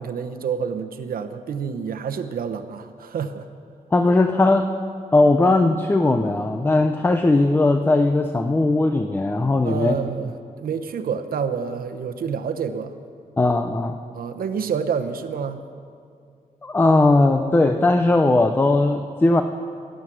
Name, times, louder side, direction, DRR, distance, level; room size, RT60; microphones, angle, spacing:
voice 1, 0.0-3.5 9.6-12.9 14.1-15.7, right 6 dB, 85° right, 8 dB, 0.9 m, -28 dB
voice 2, 3.9-4.7 5.1-10.0 13.4-14.0 16.6-19.4, left 2 dB, 15° left, 7 dB, 0.5 m, -18 dB
17.5 x 11.5 x 6.1 m, 2.3 s
wide cardioid pair, 160°, 15 cm